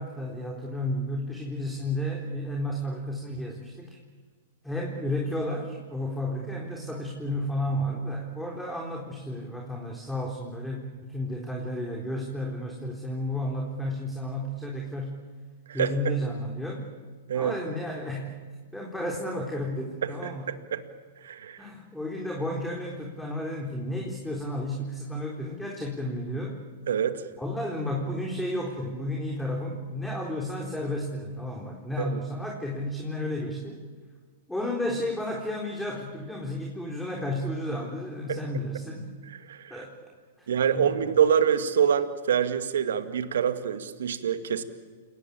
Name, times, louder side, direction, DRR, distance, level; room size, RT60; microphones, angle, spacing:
voice 1, 0.0-4.0 4.6-15.1 15.7-16.9 17.3-18.3 18.7-20.5 21.6-26.6 27.4-33.8 34.5-39.1 39.7-40.5 40.7-41.0, left 1 dB, 5° left, -1 dB, 4.0 m, -32 dB
voice 2, 15.7-16.1 17.3-17.6 20.0-20.8 21.2-21.7 26.9-27.2 32.0-32.2 38.3-38.4 39.3-39.8 40.5-44.6, right 8 dB, 70° right, 10 dB, 2.1 m, -26 dB
29.5 x 19.0 x 8.7 m, 1.5 s
hypercardioid pair, 110°, 0 cm